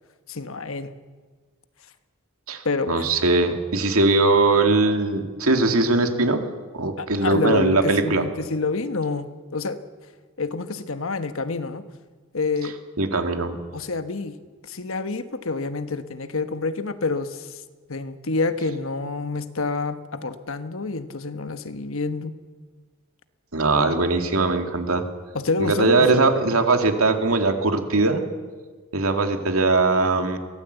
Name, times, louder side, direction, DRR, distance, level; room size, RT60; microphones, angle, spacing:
voice 1, 0.3-0.9 2.6-3.1 7.0-9.8 10.4-11.8 12.3-12.8 13.7-14.4 14.6-17.6 17.9-22.3 23.7-23.9 25.3-26.2, left 3 dB, 65° left, 10 dB, 1.3 m, -27 dB
voice 2, 2.5-6.4 6.7-8.2 13.0-13.6 23.5-25.0 25.6-28.2 28.9-30.4, right 3 dB, 75° right, 5 dB, 2.3 m, -20 dB
23.5 x 17.5 x 8.2 m, 1.5 s
head